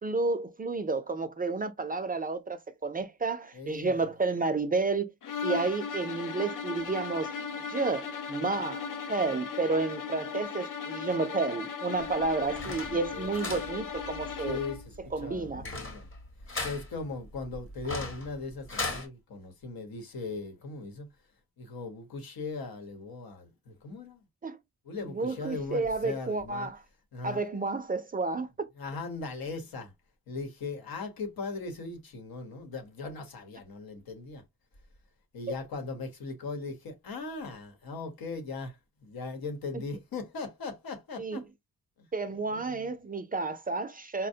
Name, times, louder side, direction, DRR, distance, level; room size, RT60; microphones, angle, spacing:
voice 1, 0.0-5.1 5.4-7.3 7.7-14.6 15.1-15.7 24.4-24.6 25.1-26.8 27.2-28.7 41.2-41.4 42.1-44.3, right 3 dB, 25° right, 0.4 m, -31 dB
voice 2, 3.5-3.9 12.8-13.3 14.4-16.1 16.6-21.1 21.6-24.2 24.8-26.7 27.1-27.4 28.8-29.9 30.3-34.4 35.3-41.5 42.0-42.1 42.5-42.9, left 3 dB, 80° left, 1.1 m, -39 dB
sound 1, 5.2-14.9, left 6 dB, 60° left, 0.6 m, -37 dB
sound 2, 12.0-19.1, left 2 dB, 35° left, 1.0 m, -39 dB
4.4 x 2.1 x 2.7 m
wide cardioid pair, 120°, 35 cm